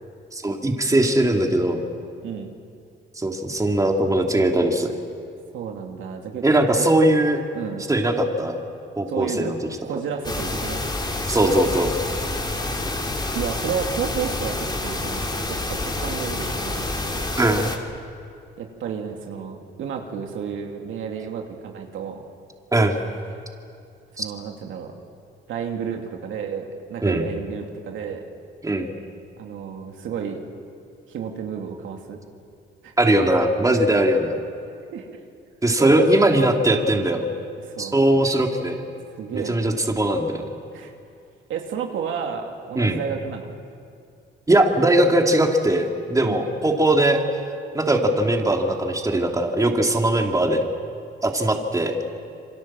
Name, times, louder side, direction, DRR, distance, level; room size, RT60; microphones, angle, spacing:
voice 1, 0.3-1.8 3.2-4.9 6.4-7.4 7.9-8.6 9.0-9.6 11.3-11.9 17.4-17.7 22.7-23.0 24.2-24.3 27.0-27.2 28.6-28.9 33.0-34.4 35.6-37.2 37.8-38.8 39.3-40.4 42.8-43.0 44.5-47.2 47.7-50.6 51.2-51.9, right 1 dB, 15° right, 2 dB, 2.9 m, -20 dB
voice 2, 5.5-6.4 6.8-6.9 7.5-7.9 9.1-9.5 9.8-10.8 13.3-16.9 18.6-22.2 24.2-24.9 25.5-28.2 29.4-30.4 31.1-32.2 32.8-32.9 34.9-35.1 35.8-36.1 37.6-38.0 39.2-39.7 40.7-40.9 41.5-43.5 46.2-46.4, right 7 dB, 80° right, 2 dB, 2.6 m, -31 dB
sound 1, 10.2-17.8, left 2 dB, 20° left, 2.9 m, -28 dB
28.0 x 24.0 x 7.6 m, 2.4 s
cardioid pair, 90°, 20 cm